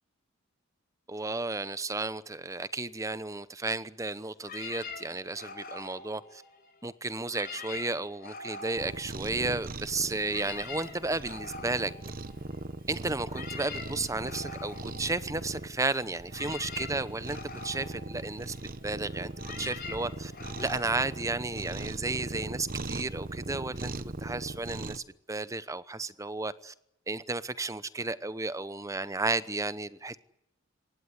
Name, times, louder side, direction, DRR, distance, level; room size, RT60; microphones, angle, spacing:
voice 1, 1.1-6.4 6.8-11.9 12.9-17.4 17.6-18.6 18.8-19.3 19.6-20.3 20.6-23.9 24.2-25.0 25.3-26.7 27.1-30.2, right 3 dB, 15° right, 15 dB, 0.9 m, -33 dB
sound 1, 4.4-6.8 7.2-9.7 10.0-22.0, left 4 dB, 45° left, 4.7 m, -45 dB
Cat, 8.8-25.0, right 2 dB, 40° right, 1.1 m, -40 dB
24.0 x 18.5 x 9.7 m, 0.82 s
head